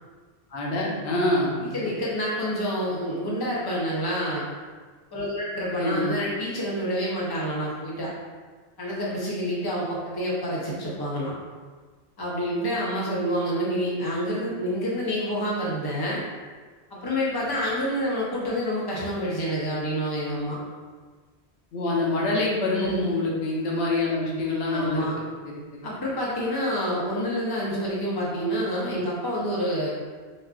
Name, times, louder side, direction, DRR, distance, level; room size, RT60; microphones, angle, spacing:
voice 1, 0.5-1.5 5.8-6.1 21.7-25.1 25.4-25.9, left 2 dB, 85° left, -3 dB, 1.0 m, -26 dB
voice 2, 1.6-4.4 5.1-8.1 8.8-11.3 12.2-16.2 16.9-20.6 22.5-23.0 24.7-25.2 25.8-29.9, equal, 25° left, -6 dB, 0.6 m, -28 dB
4.0 x 2.4 x 2.3 m, 1.4 s
omnidirectional pair, 1.1 m